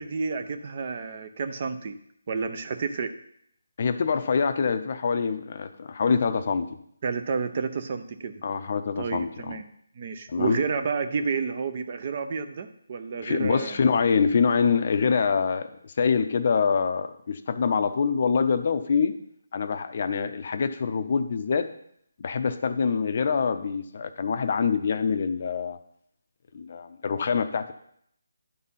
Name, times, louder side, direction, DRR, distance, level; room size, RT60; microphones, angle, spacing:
voice 1, 0.0-2.0 2.3-3.1 7.0-8.4 9.0-9.6 10.0-13.8, right 5 dB, 35° right, 9 dB, 0.7 m, -30 dB
voice 2, 3.8-6.7 8.4-9.6 10.3-10.6 13.2-19.2 19.5-21.7 22.2-25.8 26.5-27.7, left 5 dB, 45° left, 9 dB, 0.6 m, -25 dB
11.0 x 4.1 x 5.6 m, 0.69 s
figure-of-eight pair, 165°, 0 cm